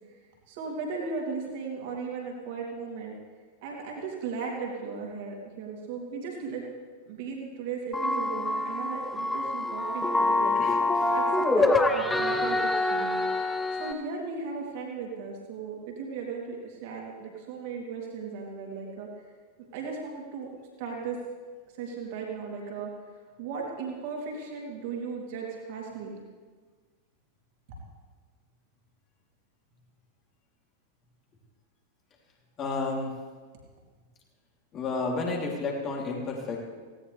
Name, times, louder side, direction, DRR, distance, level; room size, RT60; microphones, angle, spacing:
voice 1, 0.5-3.1 3.6-6.7 7.0-10.5 11.1-13.2 13.7-19.1 19.6-20.5 20.8-21.2 21.8-22.9 23.4-26.2 27.7-27.8, right 5 dB, 50° right, -1 dB, 3.2 m, -36 dB
sound 1, 7.9-13.9, left 2 dB, 10° left, 1.1 m, -26 dB
voice 2, 10.5-11.2 12.1-12.5 32.6-33.1 34.7-36.6, left 3 dB, 30° left, -1 dB, 3.3 m, -32 dB
18.0 x 17.0 x 3.4 m, 1.5 s
figure-of-eight pair, 90°, 0 cm